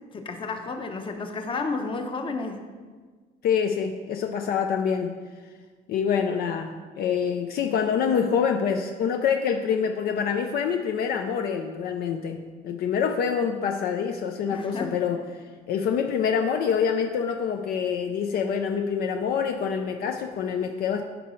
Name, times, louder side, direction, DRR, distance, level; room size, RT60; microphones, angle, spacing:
voice 1, 0.1-2.6 14.5-14.9, left 3 dB, 30° left, 5 dB, 0.8 m, -31 dB
voice 2, 3.4-5.1 5.9-15.2 15.7-21.0, left 7 dB, 65° left, 5 dB, 0.5 m, -26 dB
9.9 x 4.7 x 3.1 m, 1.5 s
cardioid pair, 110°, 17 cm